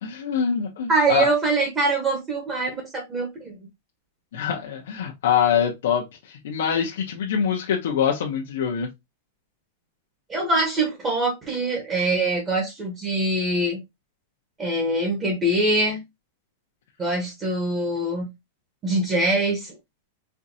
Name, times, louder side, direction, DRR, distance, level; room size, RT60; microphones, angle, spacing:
voice 1, 0.0-1.3 4.3-8.9, left 8 dB, 70° left, 0.7 m, -24 dB
voice 2, 0.9-3.6 10.3-13.8 14.6-16.0 17.0-18.3 18.8-19.7, right 2 dB, 20° right, 1.0 m, -23 dB
4.4 x 2.5 x 2.7 m
supercardioid pair, 165°, 0 cm